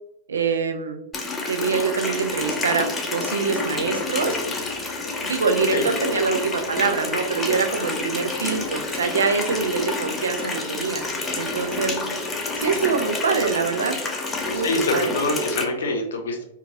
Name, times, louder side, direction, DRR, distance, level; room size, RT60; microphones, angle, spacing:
voice 1, 0.3-1.0 1.5-4.4 5.2-11.1 11.3-12.0 12.6-14.0 14.5-15.1, right 5 dB, 75° right, 6 dB, 0.4 m, -24 dB
Water tap faucet, 1.1-15.6, left 3 dB, 15° left, 0.5 m, -28 dB
voice 2, 14.6-16.4, left 2 dB, 70° left, 3 dB, 0.6 m, -25 dB
3.0 x 2.3 x 2.5 m, 0.83 s
figure-of-eight pair, 100°, 0 cm